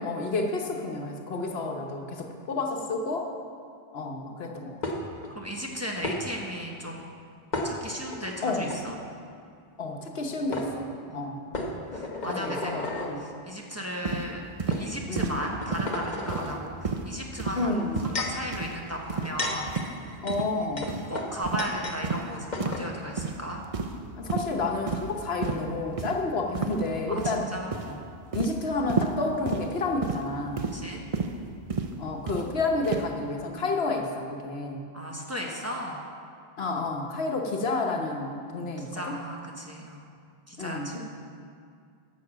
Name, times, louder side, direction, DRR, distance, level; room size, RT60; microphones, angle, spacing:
voice 1, 0.0-3.3 3.9-4.8 8.4-8.7 9.8-11.4 12.3-13.2 15.1-15.5 17.5-18.2 20.2-20.9 24.2-27.5 28.3-30.7 32.0-34.9 36.6-39.2 40.6-41.0, left 3 dB, 75° left, 2 dB, 1.3 m, -30 dB
sound 1, 4.8-5.3 6.0-6.2 7.5-8.2 8.6-8.8 10.1-10.2 10.5-10.7 11.5-13.1 13.9-14.1 14.7-14.8 15.4-16.5 17.7-18.4 19.1-22.0 22.2-22.3 22.5-22.9, left 2 dB, 45° left, 1.2 m, -33 dB
voice 2, 5.3-7.1 7.6-9.0 11.1-12.9 13.2-14.4 14.7-17.8 18.2-19.7 20.1-20.2 20.8-23.6 27.1-28.0 30.7-31.0 34.9-36.0 38.8-40.1 40.5-41.0, equal, 15° right, -1 dB, 1.1 m, -36 dB
sound 2, 14.0-14.2 14.6-14.8 15.2-15.4 15.7-15.9 16.3-16.6 16.8-17.1 17.4-17.6 18.0-18.2 18.5-18.7 19.1-19.3 19.7-19.9 20.3-20.5 20.9-21.1 21.5-21.7 22.0-22.2 22.6-22.8 23.2-23.4 23.7-24.0 24.3-24.5 24.9-25.1 25.4-25.6 26.0-26.1 26.5-26.8 27.2-27.5 27.7-27.9 28.3-28.5 28.9-29.1 29.5-29.7 30.0-30.2 30.6-30.8 31.1-31.3 31.7-31.9 32.3-32.4 32.8-33.1, right 5 dB, 40° right, 0.7 m, -30 dB
11.5 x 6.4 x 7.3 m, 2.3 s
omnidirectional pair, 1.0 m